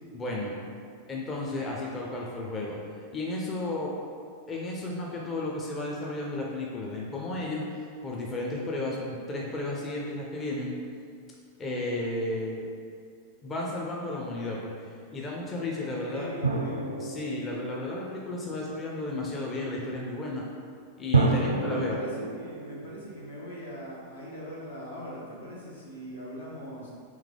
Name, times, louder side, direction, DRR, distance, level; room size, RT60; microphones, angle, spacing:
voice 1, 0.1-0.5 1.1-2.8 3.1-3.9 4.5-10.8 11.6-12.7 13.4-14.7 15.1-16.3 17.0-20.4 21.0-22.0, left 2 dB, 25° left, -3 dB, 0.5 m, -33 dB
voice 2, 15.9-17.0 21.3-26.9, equal, 70° left, -5 dB, 0.9 m, -41 dB
sound 1, 16.4-18.8 21.1-24.0, right 3 dB, 75° right, 0.3 m, -30 dB
3.4 x 3.2 x 3.6 m, 2.3 s
figure-of-eight pair, 90°, 0 cm